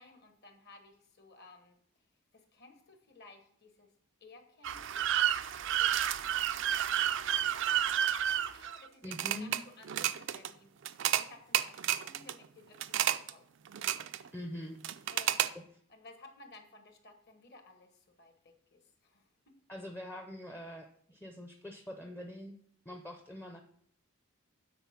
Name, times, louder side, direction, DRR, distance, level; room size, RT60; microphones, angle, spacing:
voice 1, 0.0-1.8 2.3-3.9 4.2-5.0 5.7-5.9 6.6-10.7 11.1-13.0 13.3-13.4 15.1-15.4 15.9-19.2, left 3 dB, 50° left, 6 dB, 1.3 m, -56 dB
sound 1, 4.6-9.6 9.8-10.5 10.8-11.2 11.5-12.3 12.8-13.3 13.7-14.3 14.8-15.5, right 11 dB, 55° right, 0.4 m, -30 dB
voice 2, 9.0-9.6 14.3-15.1 15.5-15.6 19.7-22.6 22.9-23.6, left 1 dB, 10° left, 4 dB, 0.6 m, -44 dB
9.2 x 4.4 x 5.8 m, 0.64 s
head